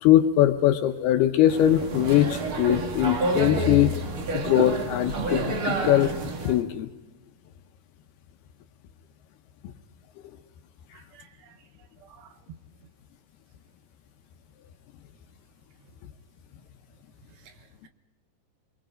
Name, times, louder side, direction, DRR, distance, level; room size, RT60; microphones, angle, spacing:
voice 1, 0.0-3.9 4.3-6.1 6.4-6.9, left 12 dB, 75° left, 7 dB, 2.5 m, -21 dB
sound 1, 1.5-6.6, right 3 dB, 55° right, 1.4 m, -29 dB
voice 2, 10.9-11.7 12.0-12.4 17.3-17.9, right 8 dB, 75° right, 8 dB, 3.3 m, -55 dB
25.5 x 23.0 x 5.1 m, 1.2 s
omnidirectional pair, 5.2 m